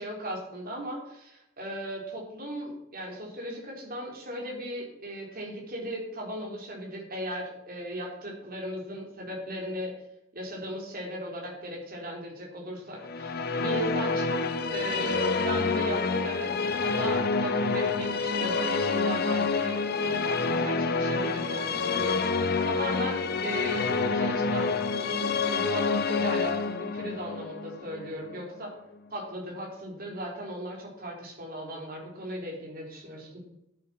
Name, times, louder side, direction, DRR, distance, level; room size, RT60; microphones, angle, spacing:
voice 1, 0.0-9.9 10.3-16.5 16.8-22.2 22.6-28.7 29.1-33.4, right 1 dB, 45° right, 0 dB, 4.0 m, -37 dB
Musical instrument, 13.0-28.5, left 4 dB, 45° left, 0.8 m, -28 dB
13.0 x 8.7 x 5.9 m, 0.83 s
head